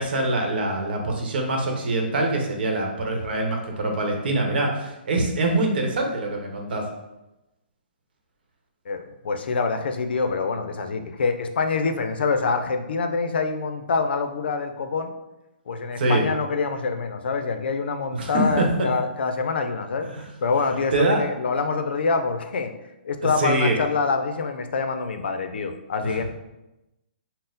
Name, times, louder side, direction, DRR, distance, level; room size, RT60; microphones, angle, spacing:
voice 1, 0.0-6.9 16.0-16.2 18.1-18.9 20.0-20.3 20.9-21.2 23.4-23.8 26.0-26.2, right 2 dB, 65° right, 2 dB, 0.9 m, -24 dB
voice 2, 8.9-15.1 15.7-20.1 20.4-22.7 23.0-26.2, left 4 dB, 75° left, 7 dB, 0.4 m, -25 dB
4.1 x 2.0 x 3.8 m, 0.96 s
hypercardioid pair, 145°, 6 cm